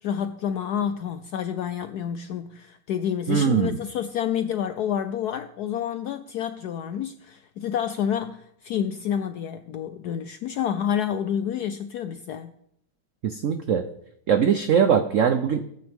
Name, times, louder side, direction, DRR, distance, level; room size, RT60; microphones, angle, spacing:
voice 1, 0.0-12.5, left 9 dB, 80° left, 0.9 m, -29 dB
voice 2, 3.3-3.8 13.2-13.8 14.3-15.6, right 7 dB, 90° right, 0.6 m, -21 dB
16.5 x 9.4 x 3.5 m
omnidirectional pair, 2.2 m